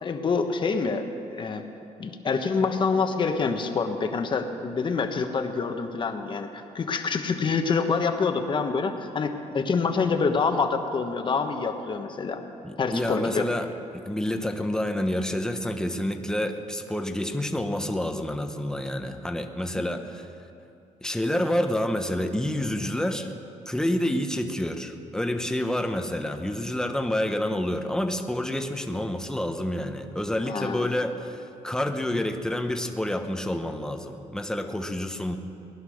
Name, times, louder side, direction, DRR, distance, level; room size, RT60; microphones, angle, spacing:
voice 1, 0.0-1.1 1.3-1.6 2.0-12.4 12.8-13.5 19.7-19.9 30.4-30.9, left 5 dB, 40° left, 6 dB, 1.2 m, -26 dB
voice 2, 12.6-20.3 21.0-23.3 23.7-35.4, left 1 dB, 5° left, 6 dB, 1.0 m, -28 dB
19.5 x 11.5 x 6.4 m, 2.7 s
cardioid pair, 125°, 13 cm